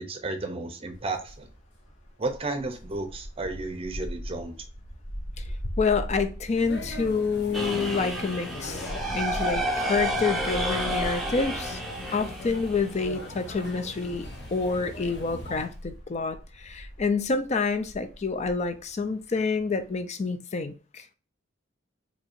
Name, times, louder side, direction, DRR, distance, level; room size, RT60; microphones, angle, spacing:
voice 1, 0.0-1.5 2.2-4.6, right 2 dB, 30° right, 0.6 m, -33 dB
sound 1, 0.9-20.0, equal, 80° left, 1.4 m, -41 dB
voice 2, 5.8-11.8 12.1-14.3 14.5-21.0, left 4 dB, 35° left, 0.4 m, -28 dB
sound 2, 6.5-15.7, left 2 dB, 60° left, 0.8 m, -40 dB
sound 3, 7.5-13.5, right 1 dB, ahead, 0.7 m, -31 dB
4.5 x 2.7 x 2.5 m
head